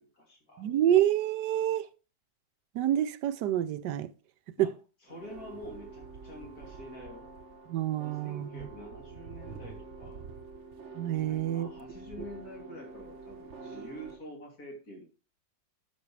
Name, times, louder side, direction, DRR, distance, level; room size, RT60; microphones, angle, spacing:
voice 1, 0.0-0.7 4.6-4.7 5.1-7.3 8.0-10.2 11.1-15.0, equal, 55° left, 3.4 m, -47 dB
voice 2, 0.6-1.9 2.7-4.1 4.6-4.7 7.7-8.7 10.9-11.7, right 11 dB, 70° right, 1.2 m, -27 dB
sound 1, 5.1-14.2, right 4 dB, 50° right, 0.9 m, -46 dB
12.0 x 6.5 x 3.3 m
omnidirectional pair, 2.0 m